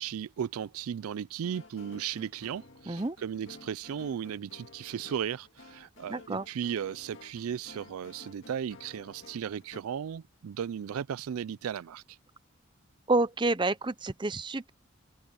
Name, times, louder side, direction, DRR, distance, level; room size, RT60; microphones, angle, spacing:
voice 1, 0.0-12.2, right 8 dB, 85° right, 0.4 m, -36 dB
sound 1, 1.4-9.8, left 2 dB, 60° left, 2.1 m, -53 dB
voice 2, 6.1-6.5 13.1-14.7, right 2 dB, 20° right, 0.6 m, -29 dB
head